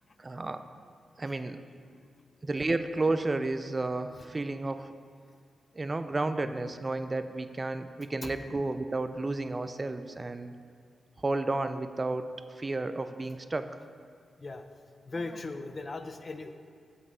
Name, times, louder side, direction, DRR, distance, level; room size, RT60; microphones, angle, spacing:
voice 1, 0.2-0.6 1.2-1.6 2.4-4.9 5.7-10.6 11.2-12.3 12.6-13.8, right 2 dB, 35° right, 10 dB, 0.4 m, -32 dB
voice 2, 1.8-2.3 8.2-8.3 14.4-14.6 15.1-16.5, left 3 dB, 45° left, 8 dB, 0.6 m, -39 dB
6.1 x 5.4 x 6.7 m, 2.1 s
cardioid pair, 55°, 0 cm